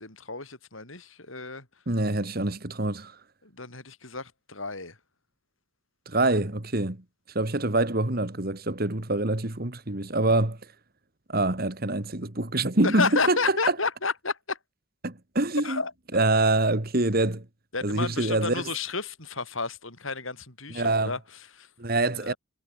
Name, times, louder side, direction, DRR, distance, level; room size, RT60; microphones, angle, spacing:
voice 1, 0.0-1.7 3.4-5.0 12.8-14.6 15.6-15.9 17.7-21.7 22.2-22.4, left 4 dB, 70° left, 7.5 m, -31 dB
voice 2, 1.9-3.2 6.1-7.0 7.3-10.6 11.3-13.4 15.0-15.8 16.1-17.5 17.8-18.6 20.7-21.1 21.8-22.3, right 2 dB, 45° right, 2.0 m, -25 dB
head